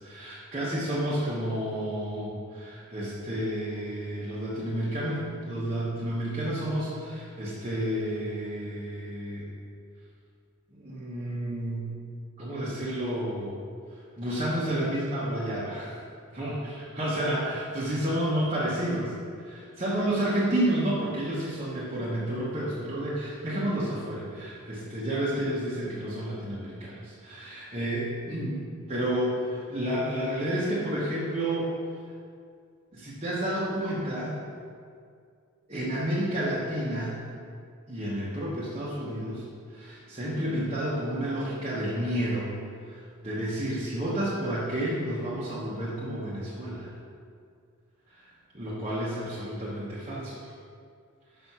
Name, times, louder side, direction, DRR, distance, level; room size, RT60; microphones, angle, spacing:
voice 1, 0.0-9.5 10.7-11.9 12.4-13.6 14.2-16.0 16.3-19.1 19.4-31.7 32.9-34.4 35.7-37.2 37.9-39.5 39.7-42.5 42.9-46.9 48.1-48.2 48.5-50.4, right 1 dB, 30° right, -8 dB, 1.1 m, -30 dB
6.3 x 5.1 x 5.5 m, 2.2 s
head